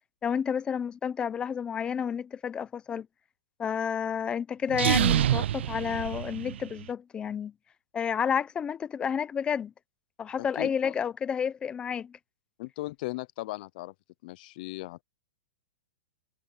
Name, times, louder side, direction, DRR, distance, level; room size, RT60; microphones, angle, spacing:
voice 1, 0.2-3.1 3.6-7.5 7.9-9.7 10.2-12.2, left 7 dB, 15° left, 1.0 m, -30 dB
sound 1, 4.7-6.8, right 11 dB, 75° right, 0.5 m, -27 dB
voice 2, 12.6-13.9 14.2-15.0, left 19 dB, 50° left, 0.6 m, -37 dB
hypercardioid pair, 150°, 6 cm